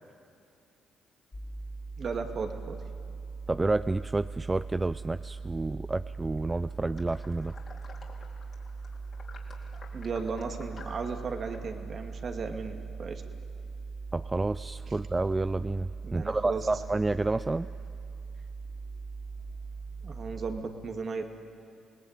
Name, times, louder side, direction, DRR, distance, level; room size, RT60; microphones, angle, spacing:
sound 1, 1.3-20.6, right 4 dB, 30° left, 3.2 m, -41 dB
voice 1, 2.0-2.8 9.9-13.2 14.9-15.0 16.0-16.7 20.0-21.3, right 5 dB, 50° right, 5 dB, 2.5 m, -35 dB
voice 2, 3.5-7.5 14.1-17.7, right 2 dB, 25° right, 13 dB, 0.5 m, -29 dB
sound 2, 6.4-11.6, left 4 dB, 50° left, 4.3 m, -52 dB
27.5 x 19.0 x 9.1 m, 2.5 s
hypercardioid pair, 55°, 0 cm